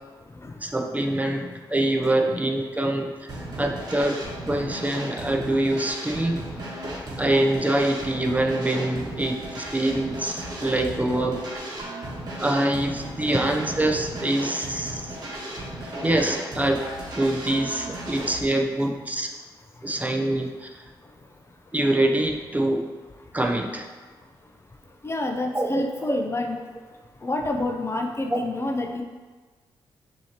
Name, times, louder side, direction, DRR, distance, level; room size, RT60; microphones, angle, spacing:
voice 1, 0.6-3.3 3.6-4.2 4.5-6.5 7.2-11.4 12.4-15.2 15.8-16.8 17.2-19.3 19.8-20.8 21.7-22.9 23.3-23.9 25.5-25.8 26.1-26.2 28.3-28.4, right 1 dB, 15° right, 2 dB, 0.6 m, -25 dB
sound 1, 3.3-18.4, right 1 dB, 45° right, 1.4 m, -35 dB
voice 2, 25.0-26.6 27.2-29.0, left 2 dB, 25° left, 3 dB, 0.5 m, -28 dB
6.2 x 2.8 x 2.9 m, 1.4 s
supercardioid pair, 55°, 10 cm